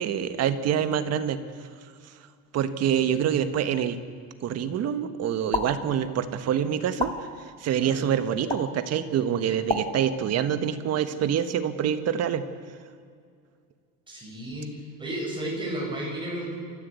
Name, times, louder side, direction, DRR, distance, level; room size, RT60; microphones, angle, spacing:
voice 1, 0.0-1.4 2.5-4.0 4.4-7.1 7.4-12.4, right 9 dB, 50° right, 10 dB, 1.6 m, -26 dB
sound 1, 5.5-5.7 7.0-7.1 8.5-8.6 9.7-9.8, left 4 dB, 15° left, 1.9 m, -26 dB
voice 2, 7.7-8.0 14.1-14.7 15.0-16.5, right 1 dB, 15° right, -3 dB, 7.7 m, -33 dB
27.5 x 14.5 x 8.4 m, 2.2 s
cardioid pair, 150°, 33 cm